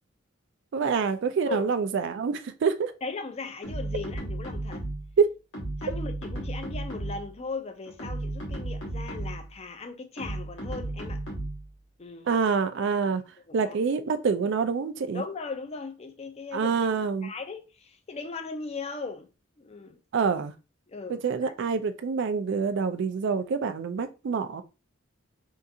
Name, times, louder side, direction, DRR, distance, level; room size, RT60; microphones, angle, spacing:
voice 1, 0.7-2.9 5.2-5.3 12.3-13.2 13.5-15.2 16.5-17.3 20.1-20.5 21.1-24.6, right 5 dB, 65° right, 0.4 m, -26 dB
voice 2, 3.0-4.8 5.8-11.2 12.0-12.3 13.5-13.8 15.1-16.8 17.2-19.3 19.6-20.0 20.9-21.5, left 4 dB, 30° left, 0.5 m, -38 dB
sound 1, 3.6-5.2 5.5-7.3 7.9-9.5 10.2-11.7, right 1 dB, 65° left, 1.2 m, -34 dB
3.6 x 2.4 x 2.7 m
head